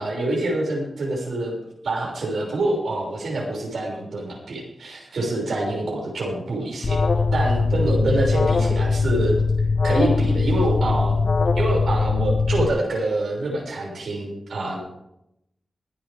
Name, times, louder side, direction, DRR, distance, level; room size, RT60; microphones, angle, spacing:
voice 1, 0.0-1.6 1.8-7.0 7.3-9.4 9.8-11.2 11.5-14.8, right 2 dB, 80° right, -1 dB, 6.2 m, -26 dB
Alarm, 6.8-12.7, left 4 dB, 55° left, 1.2 m, -21 dB
24.0 x 9.3 x 3.6 m, 0.79 s
wide cardioid pair, 110°, 0 cm